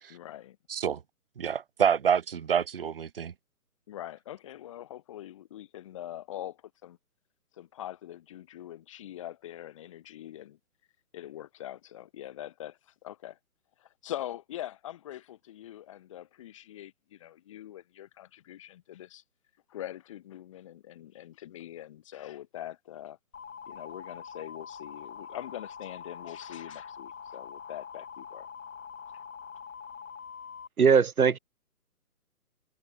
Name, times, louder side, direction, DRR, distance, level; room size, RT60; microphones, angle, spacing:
voice 1, 0.1-0.6 3.9-7.0 7.5-10.6 11.1-13.4 13.8-19.2 19.7-23.2 23.7-28.5, left 12 dB, 20° left, 1.8 m, -43 dB
voice 2, 0.7-1.0 1.4-3.3, right 7 dB, 40° right, 1.1 m, -27 dB
sound 1, 23.3-30.7, left 6 dB, 55° left, 5.2 m, -44 dB
voice 3, 30.8-31.4, right 6 dB, 70° right, 2.6 m, -20 dB
hypercardioid pair, 170°, 45 cm